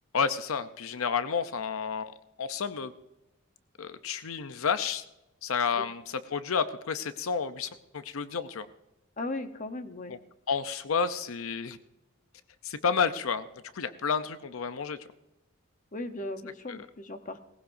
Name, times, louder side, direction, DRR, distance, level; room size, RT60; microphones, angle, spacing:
voice 1, 0.1-2.1 2.4-2.9 3.8-5.0 5.4-7.7 7.9-8.7 10.1-10.2 10.5-11.8 12.6-13.5 13.7-15.0 16.7-16.8, left 6 dB, 85° left, 11 dB, 0.6 m, -30 dB
voice 2, 9.2-10.2 15.9-17.4, left 2 dB, 40° left, 8 dB, 0.9 m, -37 dB
18.5 x 16.0 x 2.6 m, 0.92 s
head